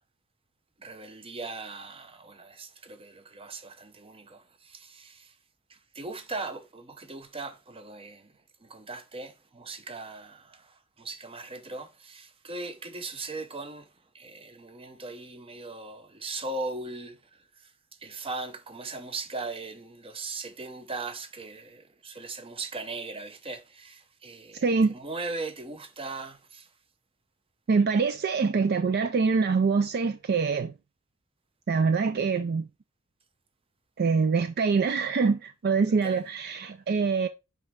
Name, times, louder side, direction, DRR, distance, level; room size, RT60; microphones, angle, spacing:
voice 1, 0.8-5.3 5.7-8.3 8.6-13.9 14.1-17.7 18.0-26.7 36.0-36.2, right 3 dB, 25° right, 0.8 m, -39 dB
voice 2, 24.6-24.9 27.7-30.7 31.7-32.6 34.0-37.3, right 5 dB, 50° right, 0.4 m, -24 dB
5.5 x 5.2 x 3.5 m
head